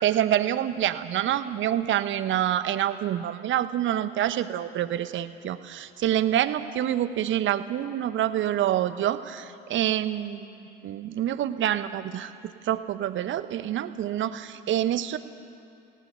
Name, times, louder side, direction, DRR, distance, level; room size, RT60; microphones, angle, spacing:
voice 1, 0.0-12.3 12.6-15.2, right 11 dB, 40° right, 12 dB, 1.2 m, -27 dB
29.0 x 18.5 x 6.8 m, 2.5 s
figure-of-eight pair, 65°, 30 cm